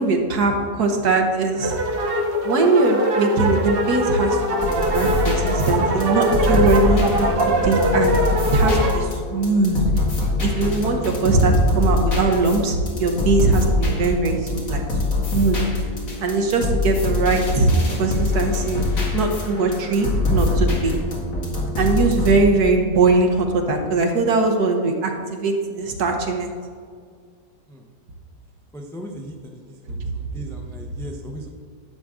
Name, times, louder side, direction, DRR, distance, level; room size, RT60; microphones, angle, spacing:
voice 1, 0.0-1.8 2.4-4.4 4.8-7.3 7.6-8.2 8.5-9.8 10.4-14.8 15.3-15.6 16.2-17.7 18.0-18.8 19.1-20.9 21.8-26.5, right 3 dB, 60° right, 3 dB, 1.6 m, -21 dB
sound 1, 1.6-9.0, right 1 dB, 40° right, 0.9 m, -22 dB
sound 2, 4.6-22.4, left 2 dB, 50° left, 2.3 m, -23 dB
voice 2, 28.7-31.5, right 1 dB, 5° left, 1 dB, 0.4 m, -37 dB
11.0 x 7.4 x 3.8 m, 2.1 s
omnidirectional pair, 1.9 m